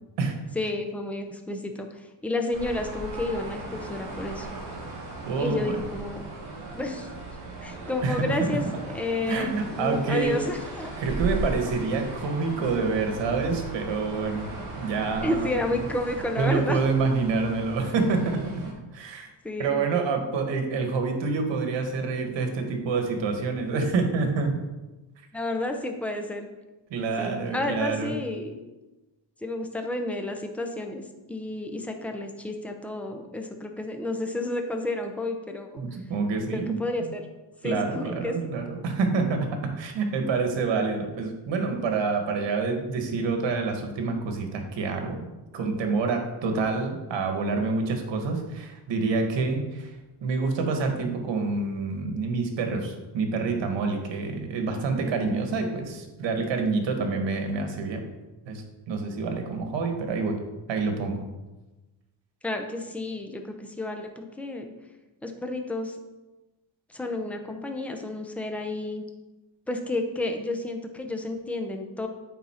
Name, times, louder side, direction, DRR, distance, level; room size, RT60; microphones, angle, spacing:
voice 1, 0.5-4.5 5.4-6.2 6.7-7.1 7.6-10.9 15.2-16.8 19.4-19.9 25.3-26.5 27.2-28.6 29.4-31.0 31.3-35.8 36.5-37.3 37.6-38.3 62.4-64.7 65.2-66.0 66.9-69.0 69.7-72.1, left 2 dB, 5° left, 4 dB, 0.6 m, -31 dB
sound 1, 2.5-18.7, right 2 dB, 45° right, 2.2 m, -37 dB
voice 2, 5.2-5.8 8.0-8.3 9.3-10.4 11.0-14.5 14.8-15.5 16.4-18.4 18.9-19.3 19.6-24.5 26.9-28.1 35.8-36.8 37.6-39.5 39.8-45.3 45.5-50.0 50.2-58.0 58.5-60.4 60.7-61.3, right 4 dB, 65° right, 5 dB, 1.4 m, -27 dB
8.9 x 4.1 x 4.3 m, 1.1 s
cardioid pair, 130°, 48 cm